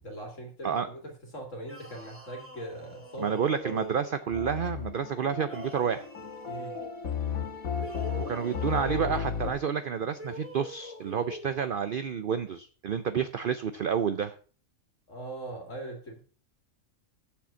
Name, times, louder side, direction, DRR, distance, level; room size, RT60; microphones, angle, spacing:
voice 1, 0.0-3.9 6.4-6.8 15.1-16.2, right 1 dB, 60° left, 1 dB, 2.5 m, -41 dB
sound 1, 1.6-4.3 5.4-6.9 7.7-9.2 10.1-11.6, left 1 dB, 10° right, 2.5 m, -44 dB
voice 2, 3.2-6.1 8.2-14.3, right 7 dB, 55° right, 11 dB, 0.6 m, -29 dB
sound 2, 4.3-9.5, left 7 dB, 85° left, 1.8 m, -34 dB
7.7 x 6.9 x 6.9 m, 0.41 s
omnidirectional pair, 1.4 m